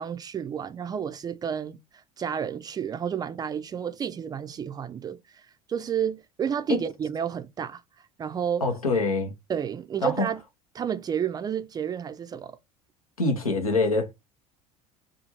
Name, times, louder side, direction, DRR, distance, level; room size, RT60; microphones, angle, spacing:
voice 1, 0.0-1.8 2.2-5.4 5.7-7.8 8.2-8.6 9.5-10.4 10.7-12.5, right 8 dB, 20° right, 0.3 m, -30 dB
voice 2, 8.6-9.3 10.0-10.3 13.2-14.1, left 3 dB, 85° left, 0.7 m, -24 dB
2.5 x 2.4 x 2.9 m
figure-of-eight pair, 65°, 18 cm